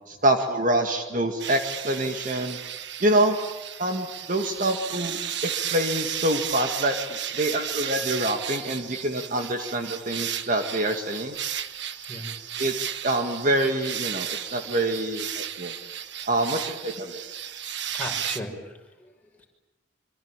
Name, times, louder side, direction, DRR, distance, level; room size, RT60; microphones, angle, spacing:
voice 1, 0.1-2.6 3.0-3.4 3.8-11.3 12.6-15.7 16.3-17.2, right 1 dB, 40° right, 5 dB, 2.1 m, -26 dB
sound 1, 1.4-18.4, right 10 dB, 60° right, 1.3 m, -34 dB
voice 2, 17.9-19.1 19.4-19.5, left 1 dB, 10° left, 0 dB, 6.0 m, -37 dB
25.5 x 25.0 x 9.0 m, 1.1 s
head